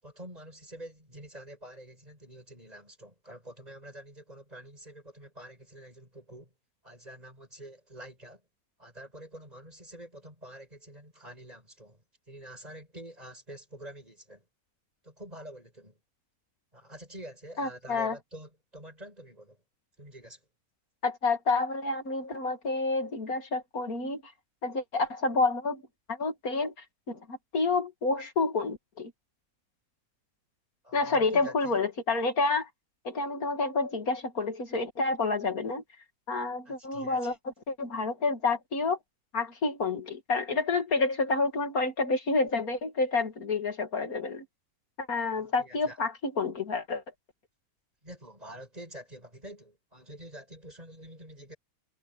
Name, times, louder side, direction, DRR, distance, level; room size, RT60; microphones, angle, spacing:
voice 1, 0.0-6.5 6.8-8.4 8.8-14.5 15.0-16.0 16.7-19.6 20.0-20.4 30.8-31.7 36.6-37.4 45.4-46.0 48.0-51.6, right 1 dB, 25° right, 7.6 m, -47 dB
voice 2, 17.6-18.2 21.0-24.3 24.6-25.8 26.1-26.7 27.1-29.1 30.9-32.7 33.0-35.8 36.3-37.3 37.7-39.0 39.3-44.4 45.0-47.0, left 3 dB, 75° left, 2.8 m, -29 dB
omnidirectional pair, 1.5 m